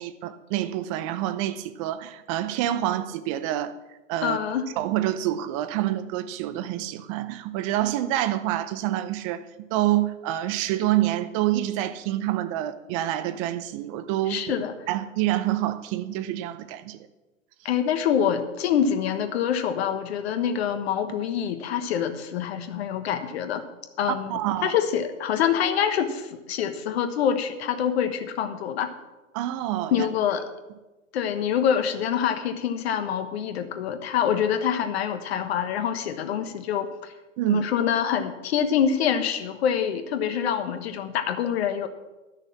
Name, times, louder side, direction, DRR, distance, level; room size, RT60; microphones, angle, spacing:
voice 1, 0.0-3.7 4.1-4.4 4.8-9.5 9.7-14.4 14.9-17.0 24.3-24.8 29.3-30.1 37.4-37.6, right 13 dB, 25° right, 0.6 m, -27 dB
voice 2, 4.2-4.7 14.3-14.7 17.6-23.6 24.0-28.9 29.9-30.5 31.1-37.1 37.5-41.9, left 8 dB, 50° left, 1.3 m, -26 dB
11.5 x 6.6 x 7.5 m
hypercardioid pair, 130°, 40 cm